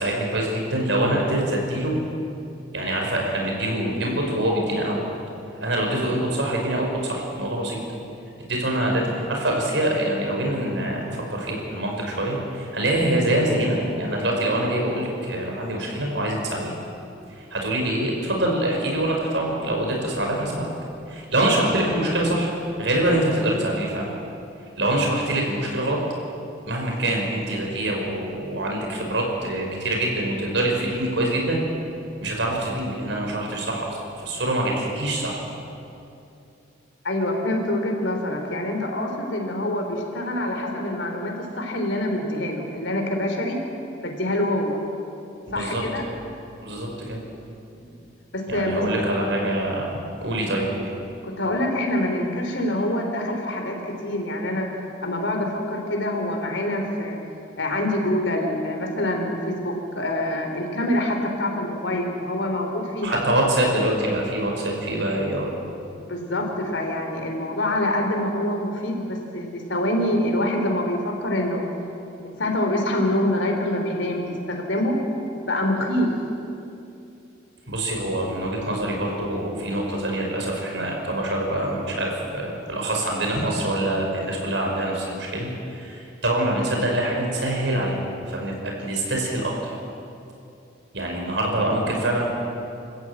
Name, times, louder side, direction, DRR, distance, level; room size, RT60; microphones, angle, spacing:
voice 1, 0.0-2.0 2.7-5.0 5.6-7.8 8.5-16.7 17.4-20.7 21.1-22.5 22.8-24.1 24.8-26.0 26.7-31.6 32.2-35.4 45.6-45.8 46.6-47.2 48.5-50.9 63.0-65.5 77.7-89.5 90.9-92.3, right 1 dB, 75° right, 0 dB, 5.6 m, -25 dB
voice 2, 37.0-43.6 44.0-44.8 45.5-46.0 47.7-47.9 48.3-48.8 51.2-54.7 55.0-57.2 57.5-63.2 66.0-71.7 72.2-75.0 75.4-76.1, left 1 dB, 80° left, 2 dB, 3.4 m, -25 dB
28.5 x 14.0 x 8.9 m, 2.7 s
head